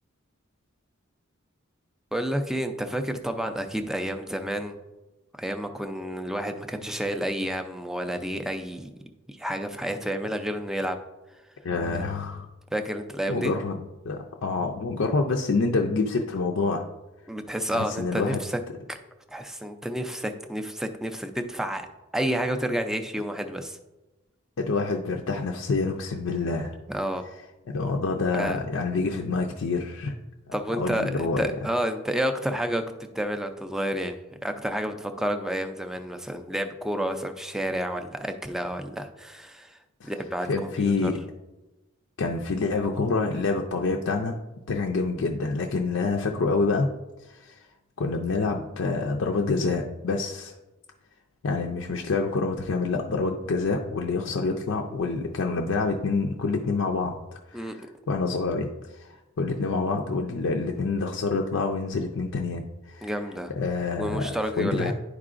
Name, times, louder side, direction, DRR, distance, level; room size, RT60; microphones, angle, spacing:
voice 1, 2.1-4.7 5.4-8.9 9.3-11.0 11.9-12.0 12.7-13.5 17.3-18.6 18.9-19.0 19.3-21.9 22.1-23.8 26.9-27.2 28.3-28.6 30.5-32.8 33.1-39.8 40.0-41.1 57.5-57.8 63.0-63.5 64.0-64.9, equal, ahead, 6 dB, 0.4 m, -30 dB
voice 2, 11.6-12.5 13.3-13.8 14.0-16.9 17.7-18.4 24.6-26.7 27.7-30.1 30.8-31.5 40.0-40.1 40.5-41.2 42.2-44.4 44.7-46.9 47.3-47.6 48.0-50.5 51.4-57.2 57.5-58.7 58.9-59.1 59.4-63.1 63.6-64.9, left 3 dB, 65° left, 1 dB, 0.5 m, -27 dB
10.5 x 4.7 x 2.5 m, 1.1 s
head